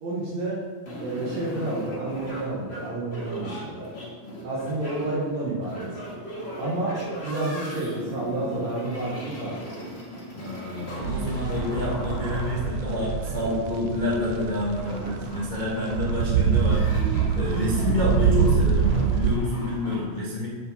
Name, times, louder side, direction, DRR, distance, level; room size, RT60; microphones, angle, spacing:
voice 1, 0.0-0.6 1.0-3.9 4.4-6.0 6.6-9.6, right 2 dB, 65° right, -6 dB, 2.6 m, -30 dB
sound 1, 0.9-20.0, equal, 35° left, 1.1 m, -37 dB
voice 2, 10.3-20.5, left 2 dB, 85° left, -6 dB, 0.4 m, -28 dB
sound 2, 11.0-19.4, right 7 dB, 80° right, 1.4 m, -25 dB
7.9 x 7.1 x 4.3 m, 1.5 s
omnidirectional pair, 3.4 m